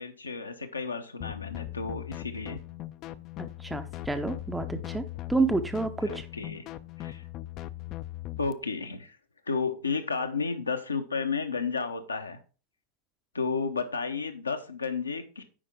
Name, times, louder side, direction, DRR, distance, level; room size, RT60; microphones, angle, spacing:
voice 1, 0.0-2.6 6.0-6.6 7.0-7.2 8.4-9.2 9.5-12.4 13.3-15.4, left 4 dB, 80° left, 6 dB, 0.9 m, -32 dB
sound 1, 1.2-8.5, left 15 dB, 35° left, 0.4 m, -39 dB
voice 2, 3.4-5.0 5.3-6.3, right 3 dB, 5° right, 8 dB, 0.6 m, -29 dB
8.6 x 5.1 x 3.5 m, 0.36 s
figure-of-eight pair, 90°, 0 cm